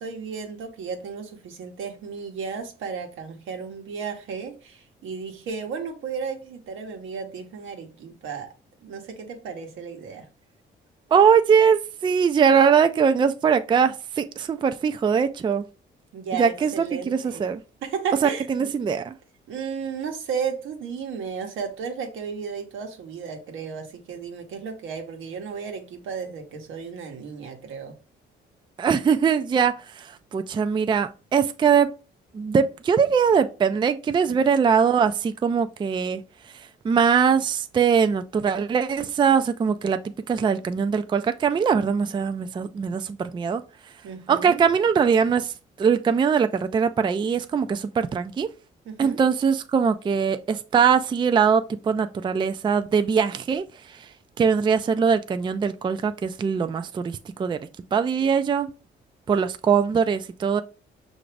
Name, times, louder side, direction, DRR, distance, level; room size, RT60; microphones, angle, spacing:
voice 1, 0.0-8.5 8.8-10.3 16.1-17.5 17.8-18.7 19.5-28.0 34.3-34.6 44.0-44.6 48.8-49.2, right 6 dB, 80° right, 1.0 m, -34 dB
voice 2, 11.1-15.6 16.4-17.6 18.2-19.1 28.8-31.9 32.3-36.2 36.5-40.0 40.3-43.6 44.3-48.5 49.0-54.1 54.4-57.6 57.9-58.7 59.3-60.6, right 6 dB, 25° right, 0.3 m, -22 dB
5.8 x 2.6 x 3.2 m
cardioid pair, 90°, 20 cm